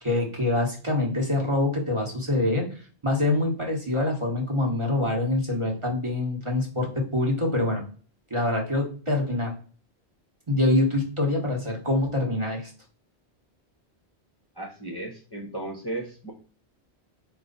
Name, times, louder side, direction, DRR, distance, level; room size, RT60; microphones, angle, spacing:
voice 1, 0.0-7.8 8.3-9.5 10.5-12.7, left 2 dB, 30° right, 0 dB, 1.1 m, -25 dB
voice 2, 14.5-16.3, right 2 dB, 25° left, -2 dB, 0.7 m, -35 dB
4.7 x 2.4 x 3.9 m, 0.39 s
omnidirectional pair, 1.1 m